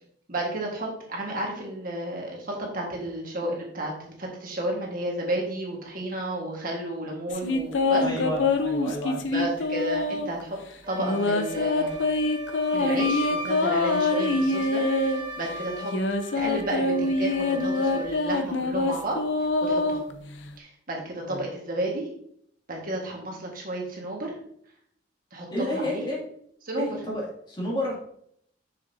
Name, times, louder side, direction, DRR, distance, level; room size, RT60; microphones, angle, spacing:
voice 1, 0.3-3.9 4.2-8.0 9.3-10.6 10.9-12.0 12.7-15.9 16.3-19.2 19.6-20.0 20.6-22.1 22.7-24.4 25.3-26.0 26.6-26.9, right 1 dB, 45° right, -1 dB, 1.6 m, -32 dB
sound 1, 7.3-10.4 11.0-15.2 15.8-20.5, left 2 dB, 75° left, 0.6 m, -25 dB
voice 2, 8.0-9.3 21.3-21.4 25.5-26.2 26.8-28.0, left 1 dB, 25° left, -5 dB, 2.3 m, -30 dB
Wind instrument woodwind instrument, 10.8-18.3, left 1 dB, 25° right, 1.0 m, -36 dB
6.5 x 6.5 x 2.7 m, 0.67 s
head